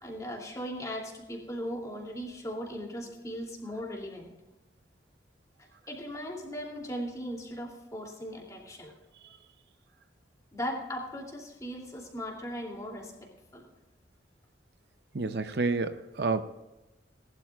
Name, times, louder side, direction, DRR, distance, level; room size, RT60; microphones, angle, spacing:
voice 1, 0.0-4.3 5.9-8.9 10.5-13.1 13.5-13.6, equal, 20° left, -1 dB, 2.9 m, -38 dB
voice 2, 15.1-16.4, right 3 dB, 60° right, 10 dB, 0.6 m, -29 dB
19.5 x 12.0 x 2.4 m, 1.0 s
head